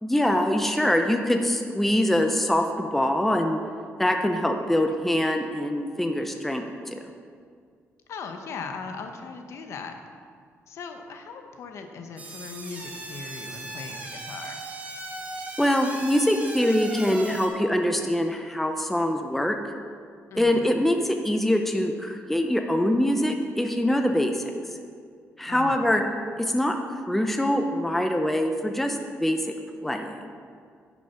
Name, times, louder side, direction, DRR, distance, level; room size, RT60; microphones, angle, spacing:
voice 1, 0.0-3.6 4.0-6.6 6.9-7.0 15.6-19.6 20.4-24.4 25.4-26.0 26.4-29.4 29.8-30.2, left 1 dB, 5° left, 4 dB, 0.6 m, -24 dB
voice 2, 8.1-10.0 10.7-14.6 20.3-20.7 25.5-25.9, left 5 dB, 65° left, 5 dB, 0.9 m, -38 dB
sound 1, 12.2-17.5, right 2 dB, 25° right, 1.3 m, -38 dB
10.5 x 6.1 x 5.6 m, 2.1 s
cardioid pair, 145°, 5 cm